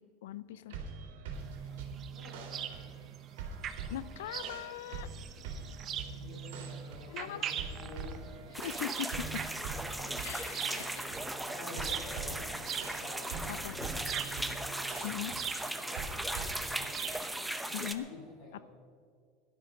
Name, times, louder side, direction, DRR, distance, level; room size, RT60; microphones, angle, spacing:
voice 1, 0.2-0.8 3.9-5.1 7.1-7.5 8.6-9.4 10.2-11.1 13.5-13.8 15.0-15.3 17.7-18.1, left 12 dB, 90° left, 17 dB, 0.5 m, -40 dB
sound 1, 0.7-17.4, right 5 dB, 85° right, 2.5 m, -44 dB
sound 2, 1.3-17.9, right 9 dB, 35° right, 0.9 m, -43 dB
voice 2, 1.6-2.8 6.0-8.4 10.0-10.2 11.5-13.4 13.7-17.1 17.9-18.6, left 3 dB, 55° left, -3 dB, 4.6 m, -50 dB
sound 3, 8.5-17.9, right 1 dB, 5° right, 0.8 m, -38 dB
17.0 x 12.0 x 5.2 m, 2.1 s
supercardioid pair, 135°, 0 cm